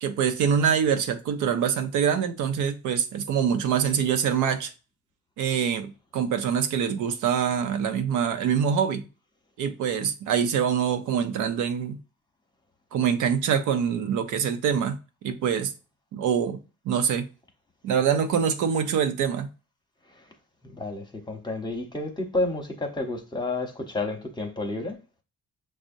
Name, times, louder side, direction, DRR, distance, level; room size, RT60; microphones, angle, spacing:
voice 1, 0.0-4.7 5.4-9.1 9.6-12.0 12.9-15.7 16.1-16.6 16.8-17.3 17.8-19.5, right 7 dB, 85° right, 0.6 m, -25 dB
voice 2, 20.6-25.0, left 2 dB, 15° left, 0.9 m, -30 dB
6.2 x 2.1 x 2.6 m
cardioid pair, 90°, 30 cm